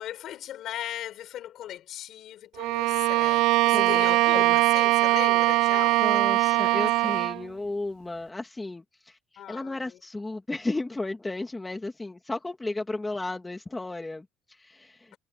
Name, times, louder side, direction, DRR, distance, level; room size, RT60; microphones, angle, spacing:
voice 1, 0.0-7.2 9.4-9.8, left 12 dB, 55° left, 6.4 m, -38 dB
Bowed string instrument, 2.6-7.4, right 19 dB, 75° right, 0.3 m, -22 dB
voice 2, 3.7-4.6 6.0-15.2, left 2 dB, 10° left, 2.4 m, -34 dB
cardioid pair, 130°, 0 cm